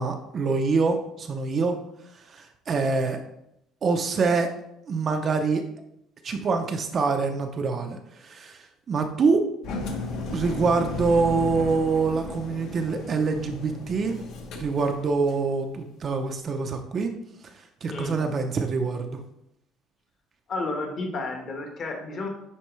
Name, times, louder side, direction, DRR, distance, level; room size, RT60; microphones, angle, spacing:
voice 1, 0.0-1.8 2.1-3.2 3.8-4.5 4.9-5.6 6.2-9.4 10.3-14.2 14.6-17.1 17.6-19.2, right 4 dB, 30° right, 5 dB, 0.5 m, -25 dB
Engine, 9.6-15.5, left 3 dB, 55° left, 1.1 m, -35 dB
voice 2, 20.5-22.3, left 2 dB, 35° left, 3 dB, 1.1 m, -31 dB
9.9 x 4.2 x 3.1 m, 0.80 s
cardioid pair, 170°, 0 cm